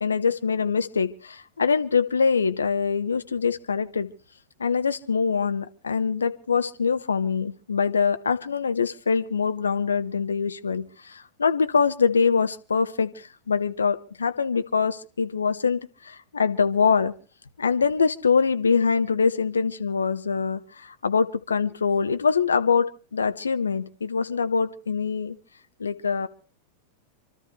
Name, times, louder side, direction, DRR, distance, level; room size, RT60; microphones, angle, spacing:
voice 1, 0.0-4.1 4.6-17.1 17.6-25.3 25.8-26.3, left 5 dB, 75° left, 10 dB, 1.0 m, -24 dB
27.5 x 13.0 x 3.3 m, 0.35 s
figure-of-eight pair, 90°, 0 cm